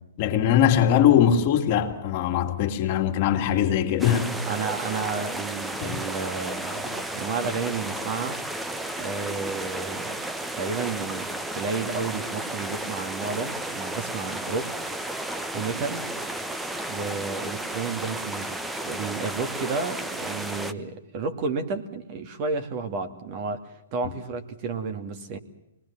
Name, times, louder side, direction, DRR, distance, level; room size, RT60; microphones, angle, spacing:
voice 1, 0.2-4.3 5.8-6.0, left 9 dB, 45° left, 2.7 m, -21 dB
sound 1, 4.0-20.7, right 1 dB, 5° right, 1.1 m, -33 dB
voice 2, 4.5-8.4 9.0-10.2 10.6-14.9 15.5-16.1 16.9-25.4, right 4 dB, 40° right, 2.5 m, -32 dB
24.5 x 20.5 x 7.4 m
hypercardioid pair, 135°, 0 cm